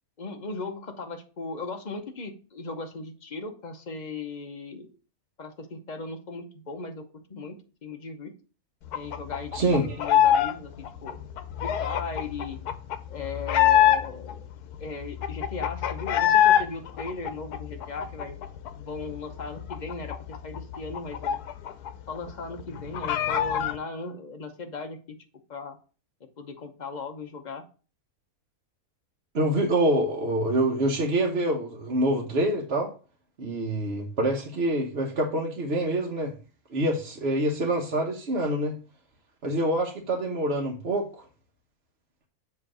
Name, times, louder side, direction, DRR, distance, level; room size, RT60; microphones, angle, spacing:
voice 1, 0.2-4.9 5.4-7.0 7.3-7.6 7.8-8.3 8.9-11.2 11.6-12.6 13.1-14.5 14.8-18.4 18.8-21.4 22.1-25.2 25.5-25.8 26.4-27.6, left 3 dB, 35° left, 0.9 m, -37 dB
sound 1, 8.9-10.5 10.8-14.3 14.7-14.8 15.0-16.6 17.0-18.7 19.0-19.1 19.4-21.9 22.2-22.3 22.6-23.8, left 10 dB, 85° left, 1.2 m, -24 dB
voice 2, 9.5-10.0 29.3-32.9 33.4-36.3 36.7-38.7 39.4-41.2, right 1 dB, 45° right, 1.2 m, -26 dB
7.4 x 3.3 x 6.1 m
omnidirectional pair, 1.6 m